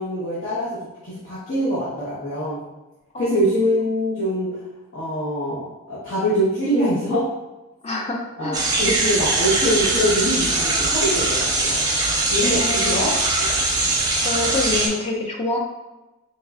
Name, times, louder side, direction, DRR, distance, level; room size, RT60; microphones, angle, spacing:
voice 1, 0.0-2.6 3.2-4.6 4.9-7.3 8.4-11.9 12.3-13.5, equal, 55° left, -9 dB, 1.0 m, -24 dB
voice 2, 7.8-8.6 12.4-13.0 14.1-15.6, left 2 dB, 30° left, 0 dB, 0.4 m, -26 dB
sound 1, 8.5-14.9, right 2 dB, 15° right, 0.6 m, -21 dB
4.4 x 3.1 x 2.4 m, 1.1 s
head